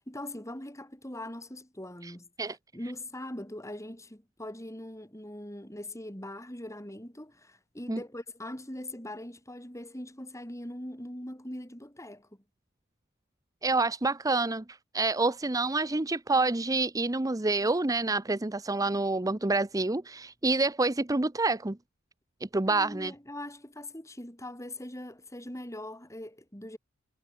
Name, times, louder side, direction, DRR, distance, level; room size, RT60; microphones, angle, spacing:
voice 1, 0.0-2.3 2.7-12.3 22.7-26.8, left 1 dB, 15° left, 6.1 m, -41 dB
voice 2, 13.6-21.8 22.5-23.1, right 3 dB, 15° right, 0.7 m, -28 dB
head